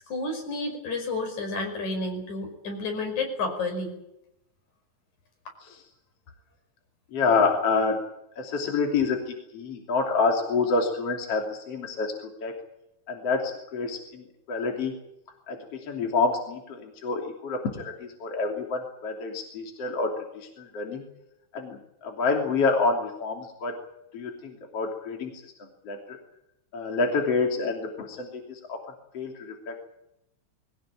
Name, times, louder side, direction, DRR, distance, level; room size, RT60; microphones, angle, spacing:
voice 1, 0.1-4.0, left 3 dB, 75° left, 4 dB, 6.7 m, -31 dB
voice 2, 7.1-8.0 8.4-12.1 12.4-12.6 13.1-14.9 15.5-21.0 21.5-23.8 24.1-25.4 25.9-26.2 26.7-28.8 29.1-29.8, left 4 dB, 55° left, 2 dB, 3.9 m, -28 dB
22.0 x 18.5 x 8.9 m, 0.84 s
omnidirectional pair, 3.4 m